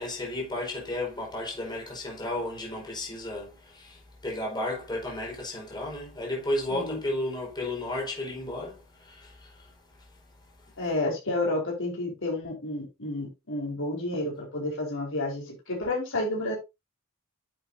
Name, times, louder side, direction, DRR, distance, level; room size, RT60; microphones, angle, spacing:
voice 1, 0.0-9.7 10.0-10.1, left 1 dB, 20° left, 4.9 m, -33 dB
voice 2, 10.8-16.5, left 2 dB, 60° left, 4.9 m, -30 dB
11.0 x 7.9 x 2.9 m
head